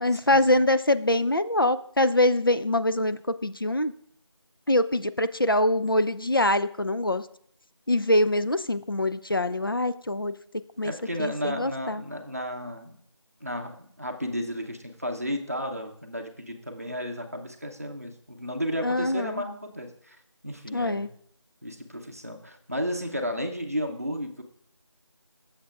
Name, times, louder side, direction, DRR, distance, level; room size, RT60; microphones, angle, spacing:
voice 1, 0.0-3.9 4.7-7.2 7.9-10.3 10.8-10.9 11.2-12.0 18.8-19.4 20.7-21.1, left 1 dB, 50° left, 11 dB, 0.4 m, -24 dB
voice 2, 10.8-13.0 13.4-20.2 20.4-21.1 21.6-24.4, equal, 30° right, 3 dB, 0.8 m, -33 dB
13.5 x 7.2 x 2.5 m, 0.64 s
figure-of-eight pair, 180°, 15 cm